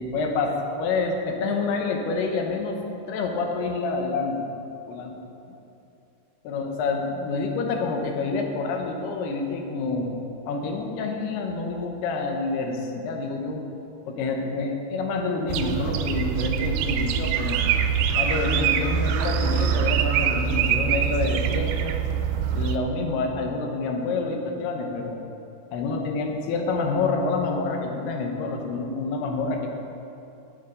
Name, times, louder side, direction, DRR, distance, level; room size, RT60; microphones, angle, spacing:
voice 1, 0.0-2.8 3.1-4.5 4.9-5.1 6.4-10.1 10.5-13.6 14.1-17.6 18.1-22.0 22.5-25.2 25.7-29.7, left 3 dB, 80° left, 3 dB, 2.9 m, -27 dB
sound 1, 15.5-22.8, right 8 dB, 80° right, 2.4 m, -24 dB
12.5 x 6.9 x 5.0 m, 2.8 s
omnidirectional pair, 4.6 m